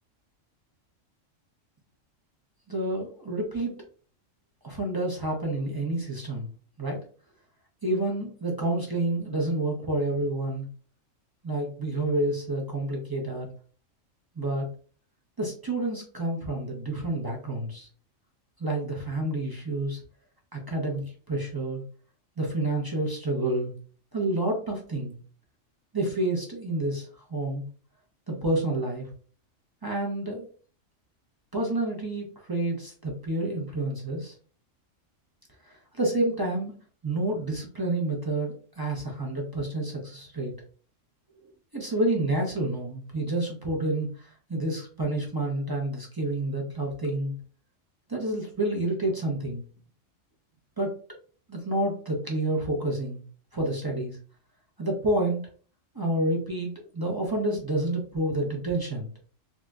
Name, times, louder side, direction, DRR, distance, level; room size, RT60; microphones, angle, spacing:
voice 1, 2.7-3.8 4.6-6.5 6.8-7.0 7.8-10.7 11.4-13.5 14.4-14.7 15.4-17.9 18.6-20.0 20.5-21.8 22.4-23.7 24.1-25.1 25.9-27.6 28.3-29.1 29.8-30.5 31.5-34.3 35.6-36.7 37.0-40.5 41.7-47.3 48.1-49.6 50.8-50.9 51.5-53.2 53.5-54.2 54.8-55.4 55.9-59.1, right 1 dB, 25° right, -1 dB, 0.5 m, -29 dB
4.0 x 2.4 x 2.2 m, 0.42 s
omnidirectional pair, 1.3 m